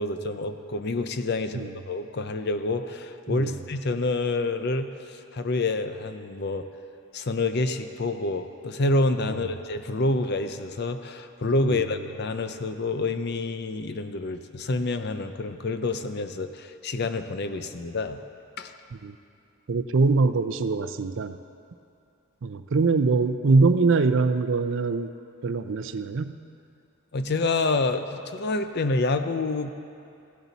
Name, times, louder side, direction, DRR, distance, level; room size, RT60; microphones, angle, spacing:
voice 1, 0.0-6.6 7.1-18.2 18.6-18.7 27.1-29.7, left 2 dB, 50° left, 9 dB, 0.6 m, -28 dB
voice 2, 3.3-3.6 11.6-11.9 19.0-19.2 19.7-21.4 22.4-25.1 25.4-26.4, right 4 dB, 55° right, 10 dB, 0.5 m, -23 dB
16.0 x 12.0 x 4.1 m, 2.5 s
head